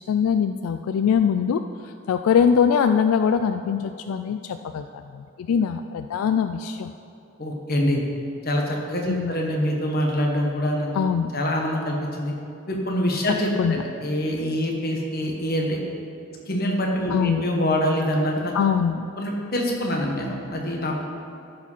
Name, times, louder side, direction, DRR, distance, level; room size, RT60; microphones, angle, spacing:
voice 1, 0.1-6.9 9.1-9.3 10.9-11.3 13.6-13.8 17.1-17.5 18.5-19.1, left 7 dB, 80° left, 9 dB, 0.3 m, -22 dB
voice 2, 7.4-8.0 8.4-10.9 11.3-12.3 12.7-15.8 16.5-18.5 19.2-21.0, equal, 45° left, 0 dB, 1.3 m, -25 dB
13.0 x 4.9 x 5.5 m, 2.7 s
head